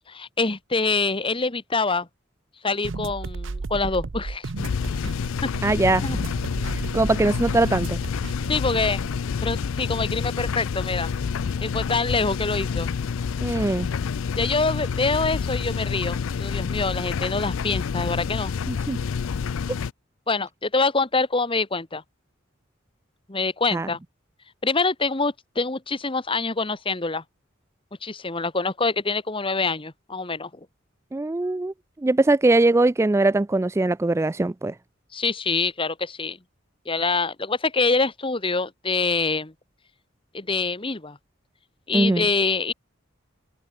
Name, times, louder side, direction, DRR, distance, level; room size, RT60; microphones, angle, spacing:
voice 1, 0.1-2.1 2.6-4.5 5.0-5.1 5.4-5.5 6.0-6.2 8.5-9.0 9.4-11.1 11.6-12.9 14.3-18.5 20.3-22.0 23.3-24.0 24.6-27.2 28.0-30.5 35.1-36.4 36.8-39.5 40.3-41.2 41.9-42.7, left 3 dB, 25° left, 1.5 m, -25 dB
sound 1, 2.8-9.2, right 3 dB, 70° right, 0.7 m, -34 dB
sound 2, 4.6-19.9, left 6 dB, 85° left, 0.4 m, -28 dB
voice 2, 5.6-6.0 6.7-8.0 13.4-13.9 18.7-19.0 23.7-23.9 31.1-31.7 32.0-34.7 41.9-42.3, right 2 dB, 15° right, 0.3 m, -21 dB
open air
head